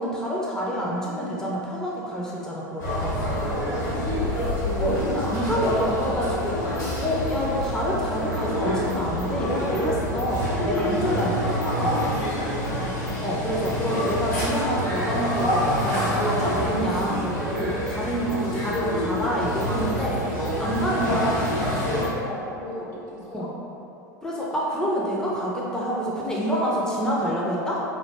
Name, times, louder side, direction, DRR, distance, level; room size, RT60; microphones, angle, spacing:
voice 1, 0.0-3.3 4.8-6.6 7.0-12.2 13.2-21.5 23.3-23.5 24.2-27.8, equal, 5° left, -5 dB, 0.6 m, -27 dB
sound 1, 2.8-22.1, equal, 85° left, 1.4 m, -26 dB
voice 2, 3.1-4.2 10.0-10.1 12.8-13.1 22.2-23.5, equal, 70° left, -6 dB, 0.9 m, -37 dB
3.1 x 2.6 x 2.9 m, 2.7 s
hypercardioid pair, 85°, 10 cm